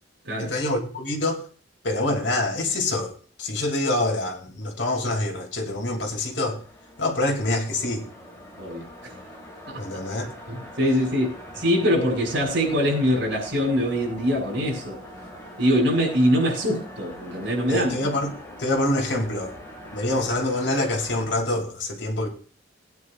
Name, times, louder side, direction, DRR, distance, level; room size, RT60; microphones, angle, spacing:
voice 1, 0.4-1.4 1.8-3.1 3.4-6.6 7.0-8.0 9.8-10.3 17.7-18.3 18.6-19.5 19.9-22.3, left 1 dB, 75° left, 2.5 m, -25 dB
sound 1, 5.7-21.2, equal, 15° left, 3.0 m, -43 dB
voice 2, 8.6-9.1 9.7-9.8 10.5-15.0 15.6-17.9, equal, 85° right, 5.9 m, -23 dB
20.5 x 9.6 x 2.4 m
head